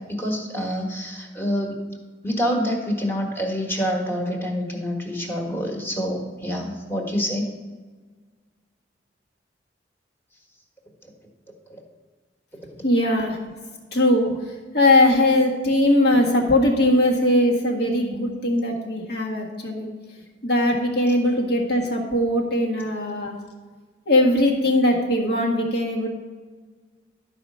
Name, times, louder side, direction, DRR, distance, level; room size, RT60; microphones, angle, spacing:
voice 1, 0.0-1.8 2.2-7.5 11.0-11.1, equal, 15° left, 0 dB, 1.5 m, -27 dB
voice 2, 12.8-13.4 13.9-14.4 14.7-19.9 20.4-23.4 24.1-26.1, left 1 dB, 65° left, 0 dB, 1.6 m, -20 dB
11.5 x 4.9 x 5.5 m, 1.4 s
head